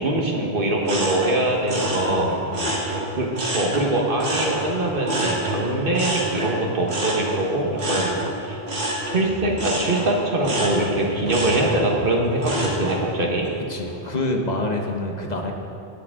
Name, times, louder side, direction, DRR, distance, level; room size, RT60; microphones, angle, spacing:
voice 1, 0.0-2.3 3.2-8.1 8.4-8.6 9.1-13.5, right 1 dB, 55° right, -1 dB, 1.6 m, -23 dB
sound 1, 0.8-3.9 4.2-13.0 13.4-13.9, right 1 dB, 80° right, 2.4 m, -28 dB
voice 2, 1.9-2.8 13.7-15.5, left 2 dB, 40° left, 2 dB, 1.2 m, -27 dB
18.0 x 7.7 x 3.7 m, 2.9 s
omnidirectional pair, 1.1 m